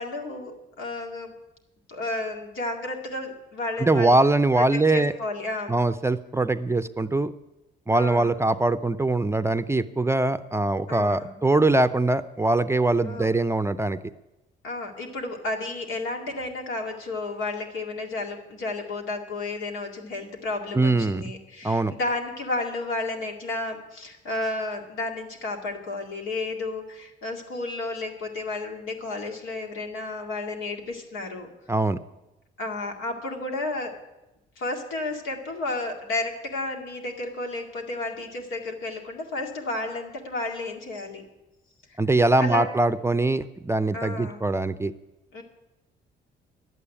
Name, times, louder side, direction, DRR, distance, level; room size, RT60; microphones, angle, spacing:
voice 1, 0.0-1.3 1.9-4.2 4.6-5.8 7.9-8.3 10.9-11.3 13.1-13.3 14.6-31.5 32.6-33.9 34.6-41.2 41.9-42.0 42.4-42.7 43.9-44.4 45.3-45.4, left 2 dB, 85° left, 2 dB, 2.2 m, -32 dB
voice 2, 3.8-5.1 5.7-7.3 7.9-14.0 20.7-21.3 21.6-21.9 31.7-32.0 42.0-44.9, right 2 dB, 15° right, 11 dB, 0.5 m, -22 dB
11.0 x 8.7 x 9.9 m, 0.97 s
cardioid pair, 90°, 20 cm